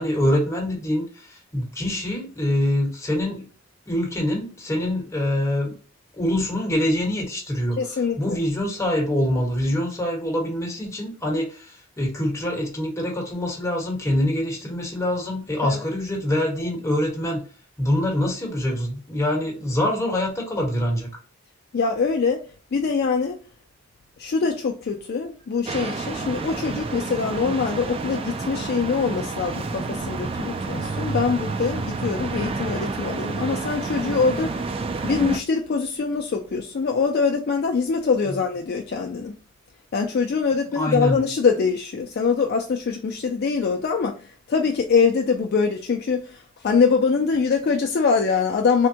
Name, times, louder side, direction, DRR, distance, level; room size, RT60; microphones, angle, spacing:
voice 1, 0.0-3.4 3.9-5.7 6.1-17.4 17.8-21.1 40.7-41.2, left 1 dB, 15° left, 1.1 m, -25 dB
voice 2, 7.8-8.4 15.6-15.8 21.7-22.4 22.7-23.4 24.2-34.5 35.0-39.3 39.9-48.9, left 5 dB, 50° left, 0.4 m, -23 dB
sound 1, 25.7-35.4, right 3 dB, 30° right, 0.3 m, -29 dB
3.5 x 2.1 x 2.7 m
head